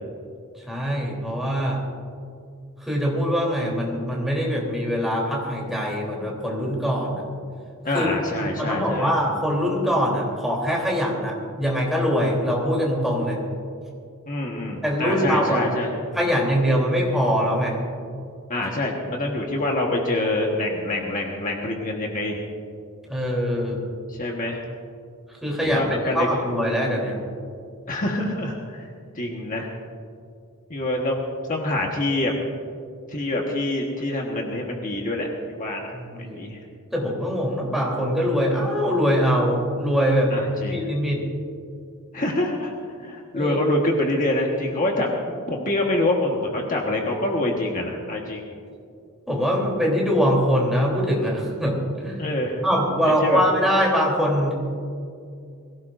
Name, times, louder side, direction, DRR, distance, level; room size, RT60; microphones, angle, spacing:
voice 1, 0.7-1.8 2.8-7.2 7.9-8.1 8.4-13.4 14.8-15.7 16.1-17.8 23.1-23.8 25.4-25.8 26.1-27.2 35.9-36.4 36.9-41.2 43.3-43.6 49.3-52.2 52.6-54.5, equal, ahead, -3 dB, 3.3 m, -23 dB
voice 2, 7.8-9.1 14.3-16.0 18.5-22.4 24.1-24.6 25.6-26.4 27.9-28.8 29.1-29.7 30.7-31.2 31.5-32.3 33.1-36.6 40.3-40.8 42.1-42.7 43.0-48.4 52.2-52.6 53.0-53.4, left 1 dB, 40° left, 0 dB, 1.3 m, -26 dB
22.5 x 16.5 x 2.6 m, 2.4 s
head